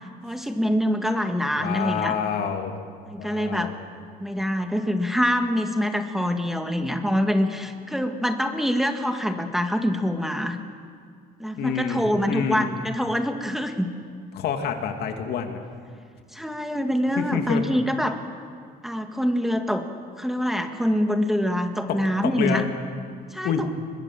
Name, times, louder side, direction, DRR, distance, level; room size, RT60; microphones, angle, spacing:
voice 1, 0.2-2.1 3.1-3.7 4.2-10.6 11.4-13.9 16.3-18.2 18.8-19.9 20.2-22.7 23.3-23.7, equal, ahead, 5 dB, 1.7 m, -25 dB
voice 2, 1.6-2.8 3.2-3.7 11.6-12.7 14.3-15.6 17.2-17.6 21.9-22.0 22.2-22.6 23.4-23.7, left 7 dB, 70° left, 5 dB, 2.5 m, -27 dB
24.5 x 21.5 x 7.6 m, 2.1 s
cardioid pair, 110°, 17 cm